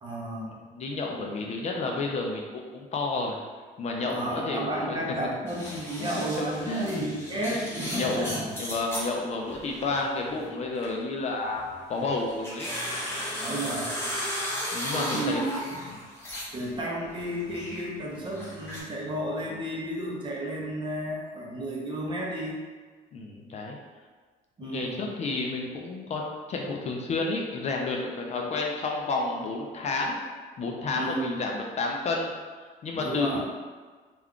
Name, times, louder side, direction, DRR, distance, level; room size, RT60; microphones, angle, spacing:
voice 1, 0.0-0.5 4.1-8.6 13.4-13.9 14.9-15.8 16.5-22.6 24.6-25.1 28.3-28.5 30.9-31.4 32.9-33.4, right 1 dB, 30° right, -3 dB, 0.6 m, -32 dB
voice 2, 0.7-3.4 3.8-5.0 6.0-7.1 7.3-11.6 11.9-12.7 14.7-15.4 15.9-16.0 23.1-23.8 24.6-30.2 30.6-32.3 32.8-33.4, left 3 dB, 40° left, 0 dB, 0.4 m, -31 dB
sound 1, 5.5-9.1 9.5-11.0 11.5-16.7 17.0-18.8, equal, 15° left, 0.8 m, -35 dB
2.3 x 2.3 x 3.5 m, 1.4 s
cardioid pair, 110°, 17 cm